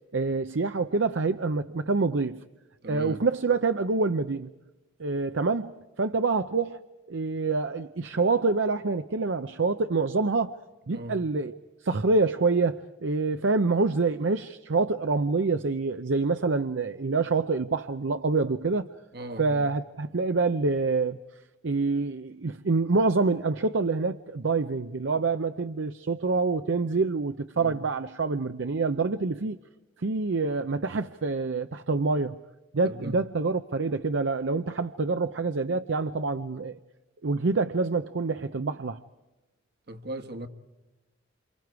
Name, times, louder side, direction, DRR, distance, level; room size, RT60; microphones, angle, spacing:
voice 1, 0.1-2.4 2.9-4.5 5.0-6.8 7.1-10.5 10.9-11.5 11.8-18.9 19.4-21.2 21.6-29.6 30.0-32.4 32.7-36.8 37.2-39.0, right 3 dB, 70° right, 0.7 m, -26 dB
voice 2, 2.8-3.2 10.9-11.2 19.1-19.7 27.5-27.8 32.8-33.2 39.9-40.5, right 1 dB, 55° right, 1.5 m, -38 dB
29.0 x 27.5 x 4.7 m
head